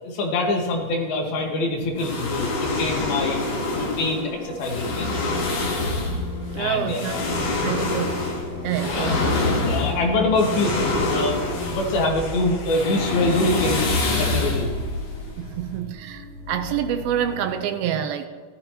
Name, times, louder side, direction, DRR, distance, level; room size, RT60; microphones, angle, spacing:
voice 1, 0.0-3.4 3.7-5.1 6.6-7.3 8.8-9.1 9.7-10.8 11.1-14.7, left 2 dB, 75° left, 1 dB, 3.4 m, -25 dB
sound 1, 1.2-8.2 8.6-9.0 9.4-17.5, right 2 dB, 30° right, 1.3 m, -42 dB
sound 2, 2.0-15.9, left 2 dB, 50° left, 1.6 m, -26 dB
sound 3, 2.9-11.7, left 2 dB, 60° right, 4.6 m, -35 dB
voice 2, 6.5-7.3 7.6-8.2 8.6-9.3 15.4-18.3, right 9 dB, 85° right, 8 dB, 2.5 m, -27 dB
15.0 x 12.5 x 2.9 m, 1.6 s
omnidirectional pair, 4.5 m